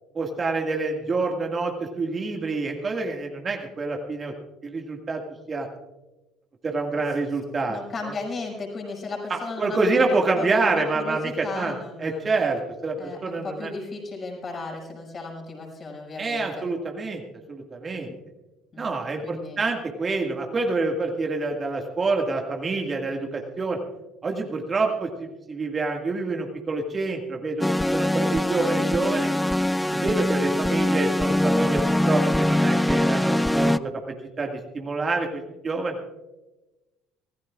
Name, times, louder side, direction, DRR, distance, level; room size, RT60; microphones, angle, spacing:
voice 1, 0.1-4.3 4.6-5.2 5.5-5.7 6.6-8.1 9.3-13.7 16.2-17.2 17.5-18.1 18.8-23.8 24.2-27.7 27.9-29.3 29.9-34.0 34.4-36.0, right 3 dB, 35° right, 2 dB, 1.9 m, -27 dB
voice 2, 7.7-12.3 13.0-16.7 17.9-18.1 18.7-19.0 19.2-19.6, left 3 dB, 35° left, 0 dB, 6.0 m, -35 dB
sound 1, 27.6-33.8, left 1 dB, 5° left, 0.4 m, -22 dB
25.5 x 15.5 x 2.4 m, 1.1 s
hypercardioid pair, 60°, 0 cm